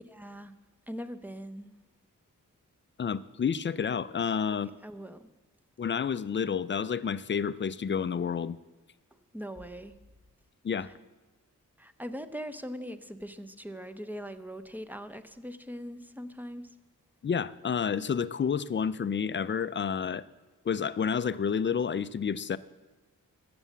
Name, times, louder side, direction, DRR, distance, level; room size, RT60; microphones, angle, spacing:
voice 1, 0.1-0.5 0.9-1.7 4.5-5.3 9.3-9.9 10.8-10.9 11.8-16.8, equal, 5° right, 0.6 m, -41 dB
voice 2, 3.0-4.7 5.8-8.6 10.6-10.9 17.2-20.2 20.7-22.6, left 7 dB, 35° left, 0.4 m, -30 dB
14.5 x 6.8 x 8.2 m
wide cardioid pair, 145°, 32 cm